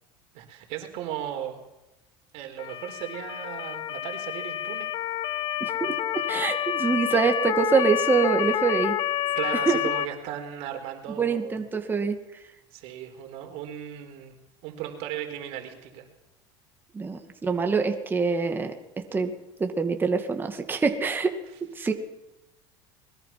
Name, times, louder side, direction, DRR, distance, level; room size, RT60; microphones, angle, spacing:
voice 1, 0.3-1.6 2.3-4.9 7.1-7.2 9.4-11.6 12.7-14.4 14.6-16.1, right 10 dB, 65° right, 5 dB, 4.2 m, -36 dB
Motor vehicle (road) / Siren, 2.6-10.1, left 11 dB, 45° left, 1.0 m, -29 dB
voice 2, 5.6-9.0 9.7-9.8 11.2-12.2 16.9-19.3 19.6-21.4 21.8-21.9, right 5 dB, 20° right, 5 dB, 2.3 m, -25 dB
24.5 x 22.0 x 6.0 m, 0.94 s
supercardioid pair, 120°, 11 cm